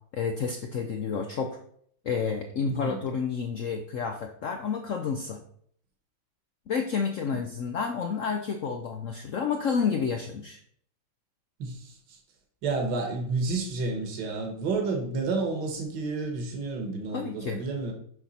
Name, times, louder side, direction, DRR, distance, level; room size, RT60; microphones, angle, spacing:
voice 1, 0.1-1.6 2.0-5.4 6.7-10.6 17.1-17.6, left 6 dB, 75° left, 5 dB, 0.7 m, -30 dB
voice 2, 2.6-3.0 7.3-7.4 11.6-12.2 12.6-17.9, right 3 dB, 65° right, 3 dB, 1.9 m, -30 dB
7.1 x 5.7 x 4.2 m, 0.63 s
omnidirectional pair, 2.1 m